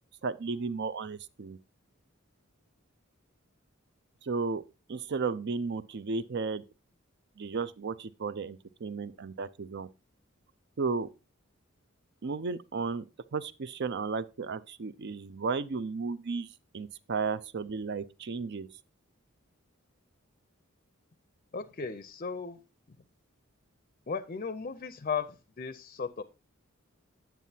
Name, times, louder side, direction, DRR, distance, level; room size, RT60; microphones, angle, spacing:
voice 1, 0.2-1.6 4.2-4.6 4.9-6.6 7.4-9.9 10.8-11.1 12.2-13.0 13.3-16.5 16.7-18.7, right 4 dB, 55° right, 0.5 m, -34 dB
voice 2, 21.5-22.6 24.1-26.2, left 5 dB, 40° left, 0.5 m, -36 dB
9.1 x 8.3 x 2.7 m
head